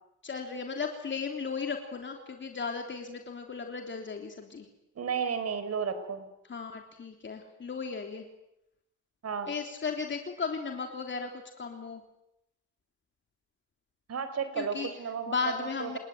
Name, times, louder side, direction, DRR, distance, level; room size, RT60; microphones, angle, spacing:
voice 1, 0.2-4.7 6.5-8.3 9.5-12.0 14.6-14.9 15.3-16.0, left 5 dB, 40° left, 3 dB, 3.4 m, -35 dB
voice 2, 4.9-6.3 9.2-9.5 14.1-15.3 15.6-16.0, right 6 dB, 55° right, 11 dB, 4.5 m, -33 dB
29.0 x 19.0 x 9.2 m, 0.86 s
cardioid pair, 90°, 30 cm